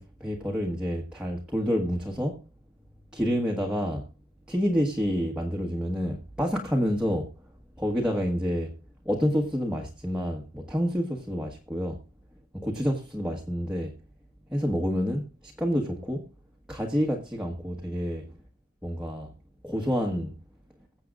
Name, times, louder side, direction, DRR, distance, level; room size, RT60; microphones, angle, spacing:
voice 1, 0.0-2.4 3.1-4.0 4.5-7.3 7.8-8.8 9.0-12.0 12.5-14.0 14.5-16.3 16.7-18.3 18.8-19.3 19.6-20.4, equal, 5° right, 1.3 m, -28 dB
23.0 x 7.8 x 2.5 m
head